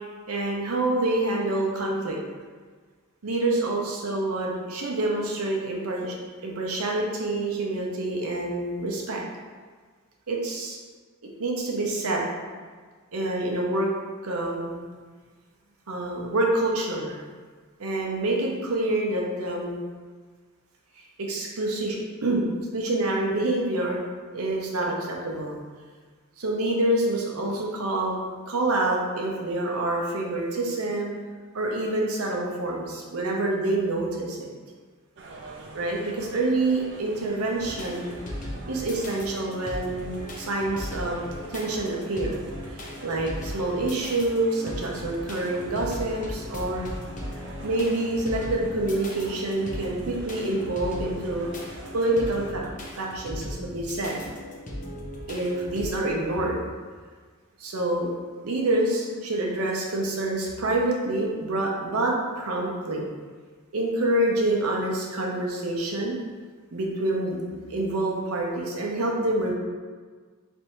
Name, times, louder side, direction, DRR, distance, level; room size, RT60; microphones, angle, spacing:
voice 1, 0.3-2.2 3.2-6.2 6.4-9.2 10.3-10.8 11.4-12.2 13.1-13.9 14.2-14.8 15.9-17.2 17.8-19.8 21.2-24.0 24.3-25.5 26.4-28.2 28.5-31.1 31.5-34.5 35.7-38.1 38.7-46.8 47.6-51.5 51.9-52.7 53.0-54.2 55.3-56.6 57.6-58.1 58.4-63.1 63.7-66.1 66.7-67.4 67.7-69.5, right 2 dB, 85° right, -1 dB, 0.7 m, -27 dB
sound 1, 35.2-52.5, right 2 dB, 55° right, 0.5 m, -45 dB
sound 2, 37.6-55.9, left 1 dB, 35° left, 0.6 m, -38 dB
3.3 x 2.7 x 4.3 m, 1.5 s
head